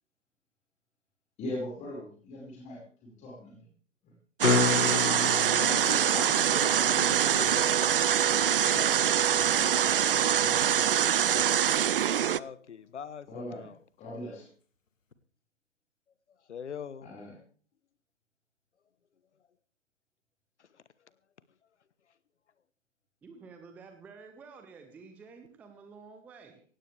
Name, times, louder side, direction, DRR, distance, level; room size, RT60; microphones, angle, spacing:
voice 1, 1.4-3.7 4.0-4.1 8.7-11.0 13.3-13.7 14.0-14.5 17.0-17.4, left 1 dB, 20° left, -4 dB, 5.1 m, -42 dB
sound 1, 4.4-10.4 15.1-15.2, left 5 dB, 85° left, 1.8 m, -33 dB
sound 2, 4.4-12.4, right 9 dB, 45° right, 0.5 m, -24 dB
voice 2, 5.6-7.9 12.3-13.8 16.5-17.1 20.6-20.8, left 7 dB, 65° left, 17 dB, 1.2 m, -43 dB
voice 3, 23.2-26.6, right 4 dB, 5° right, 6 dB, 0.7 m, -50 dB
17.0 x 16.5 x 3.4 m, 0.43 s
figure-of-eight pair, 140°, 38 cm